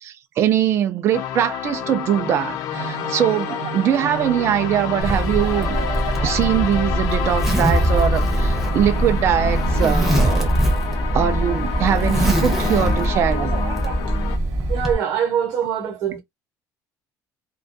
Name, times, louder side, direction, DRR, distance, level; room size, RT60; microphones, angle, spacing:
voice 1, 0.0-5.8 6.2-10.5 11.1-13.5, right 10 dB, 35° right, 0.4 m, -22 dB
sound 1, 1.1-14.4, left 9 dB, 55° left, 0.4 m, -29 dB
sound 2, 2.7-14.9, right 11 dB, 80° right, 0.6 m, -34 dB
Zipper (clothing), 5.0-14.9, right 1 dB, 5° right, 0.7 m, -22 dB
voice 2, 14.7-16.2, right 8 dB, 55° right, 0.9 m, -23 dB
2.4 x 2.3 x 2.5 m
cardioid pair, 170°, 7 cm